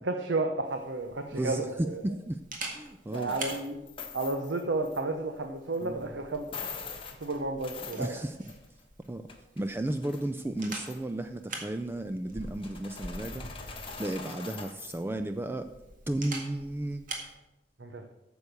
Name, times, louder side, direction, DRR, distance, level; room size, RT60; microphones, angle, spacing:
voice 1, 0.0-2.0 3.1-3.8 4.1-6.5 7.2-8.2 17.8-18.0, right 2 dB, 75° right, 5 dB, 0.8 m, -32 dB
Camera, 0.6-17.3, right 2 dB, 50° right, 1.9 m, -45 dB
voice 2, 1.3-2.4 2.7-3.3 5.8-6.1 8.0-8.4 9.1-9.3 9.6-15.7 16.1-17.1, right 1 dB, 10° right, 8 dB, 0.3 m, -34 dB
sound 1, 3.1-5.0 5.7-5.8 6.3-8.8 9.0-10.3 10.6-11.1 12.4-15.0, left 5 dB, 30° left, 1.2 m, -43 dB
9.1 x 7.0 x 6.6 m, 1.0 s
head